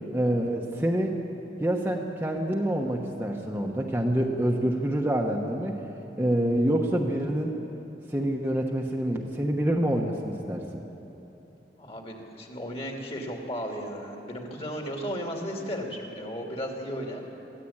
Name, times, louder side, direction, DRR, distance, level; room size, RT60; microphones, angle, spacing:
voice 1, 0.1-1.2 1.6-5.8 6.2-7.6 8.1-10.8, right 1 dB, 10° right, 0 dB, 1.1 m, -26 dB
voice 2, 11.8-17.2, equal, 35° left, 1 dB, 2.8 m, -35 dB
23.0 x 15.5 x 8.8 m, 3.0 s
head